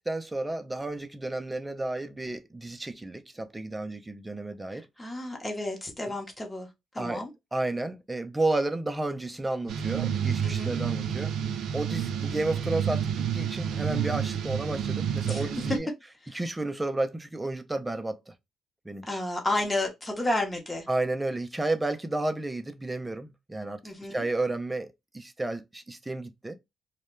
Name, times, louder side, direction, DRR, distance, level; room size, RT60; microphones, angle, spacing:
voice 1, 0.1-5.1 7.0-7.2 7.5-11.3 11.7-15.9 16.3-18.3 18.9-19.2 20.9-23.8 24.1-26.6, right 2 dB, 15° right, 0.4 m, -32 dB
voice 2, 4.7-6.7 6.9-7.3 10.4-10.8 15.2-15.5 16.3-16.4 19.1-20.9 23.8-24.2, left 1 dB, 15° left, 0.8 m, -31 dB
sound 1, 9.7-15.8, right 8 dB, 75° right, 0.4 m, -29 dB
2.2 x 2.1 x 3.0 m
cardioid pair, 90°, 0 cm